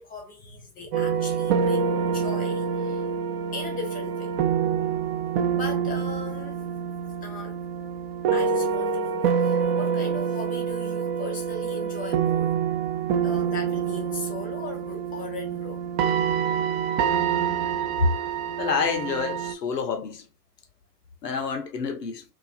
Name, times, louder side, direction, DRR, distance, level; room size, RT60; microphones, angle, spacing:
voice 1, 0.0-3.1 3.5-4.4 5.5-6.7 7.2-7.6 8.3-12.5 13.2-15.8, left 3 dB, 20° left, 0.6 m, -38 dB
sound 1, 0.9-19.5, right 7 dB, 40° right, 0.5 m, -26 dB
voice 2, 18.6-20.3 21.2-22.2, left 4 dB, 80° left, 0.8 m, -27 dB
2.5 x 2.4 x 2.5 m
figure-of-eight pair, 100°, 48 cm